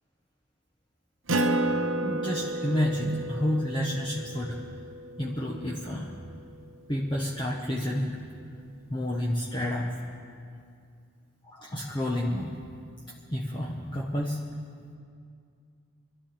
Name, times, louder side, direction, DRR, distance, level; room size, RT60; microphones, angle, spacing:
Acoustic guitar, 1.3-6.2, right 1 dB, 75° right, 1.0 m, -31 dB
voice 1, 2.0-4.6 5.2-6.1 6.9-8.2 8.9-9.9 11.4-12.6 13.3-14.4, left 1 dB, 25° left, -4 dB, 1.2 m, -30 dB
26.0 x 12.0 x 4.4 m, 2.3 s
head